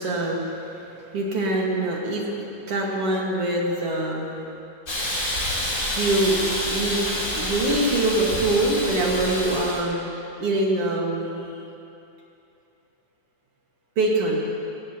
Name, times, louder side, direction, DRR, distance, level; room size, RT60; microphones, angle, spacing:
voice 1, 0.0-4.5 6.0-10.1 10.4-11.5 14.0-14.5, right 2 dB, 50° right, -2 dB, 2.3 m, -24 dB
Hiss, 4.9-9.8, left 1 dB, 25° left, 2.5 m, -28 dB
18.5 x 17.0 x 2.9 m, 2.8 s
omnidirectional pair, 4.0 m